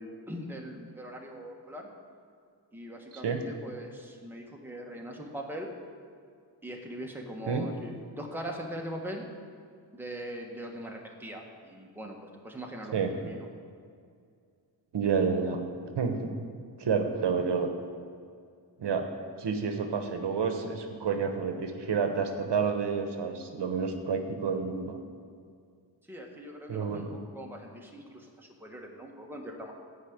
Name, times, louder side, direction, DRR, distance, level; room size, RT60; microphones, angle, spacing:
voice 1, 0.0-1.9 2.7-5.7 6.6-9.2 9.9-12.2 12.4-13.4 26.1-29.7, equal, 5° right, 0 dB, 1.5 m, -41 dB
voice 2, 3.1-3.4 7.5-7.7 12.9-13.1 14.9-15.6 16.0-16.3 16.8-17.7 18.8-19.1 19.4-25.0 26.7-27.2, right 5 dB, 65° right, 5 dB, 1.2 m, -29 dB
14.0 x 5.4 x 8.8 m, 2.3 s
wide cardioid pair, 110°, 44 cm